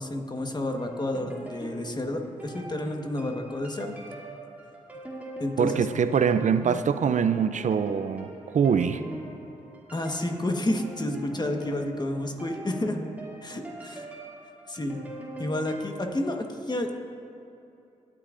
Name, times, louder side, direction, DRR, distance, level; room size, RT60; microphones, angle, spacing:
voice 1, 0.0-4.0 5.4-5.9 9.9-13.0 13.4-14.1 14.7-15.0 15.4-17.0, left 1 dB, 30° left, 3 dB, 1.3 m, -30 dB
sound 1, 0.8-16.1, right 1 dB, 10° right, 2.5 m, -42 dB
voice 2, 5.6-9.0, right 7 dB, 60° right, 11 dB, 0.5 m, -24 dB
18.5 x 8.7 x 2.6 m, 2.7 s
supercardioid pair, 50°, 15 cm